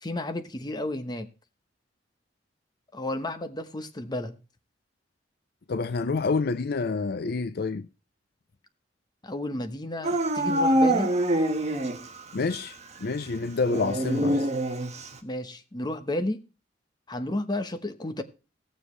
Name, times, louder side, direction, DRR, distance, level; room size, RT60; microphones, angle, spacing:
voice 1, 0.0-1.3 2.9-4.4 9.2-11.1 15.2-16.4 17.1-18.2, left 1 dB, 25° left, 1.0 m, -32 dB
voice 2, 5.7-7.9 12.3-14.5, left 4 dB, 60° left, 0.5 m, -28 dB
Dog / Siren, 10.0-12.2 12.5-12.6 13.6-15.2, right 1 dB, 40° right, 1.4 m, -25 dB
17.0 x 7.2 x 3.2 m
head